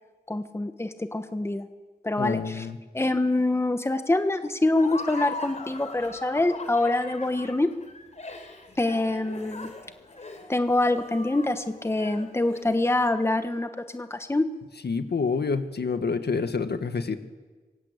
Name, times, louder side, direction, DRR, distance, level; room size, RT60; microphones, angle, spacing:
voice 1, 0.3-1.7 2.0-2.7 2.9-7.7 8.8-9.7 10.5-14.5, left 2 dB, 15° left, 8 dB, 1.3 m, -25 dB
voice 2, 2.2-2.8 14.8-17.2, left 4 dB, 75° left, 9 dB, 1.8 m, -27 dB
Laughter, 4.7-13.0, left 2 dB, 40° left, 3.8 m, -40 dB
26.5 x 23.5 x 8.4 m, 1.3 s
wide cardioid pair, 130°, 17 cm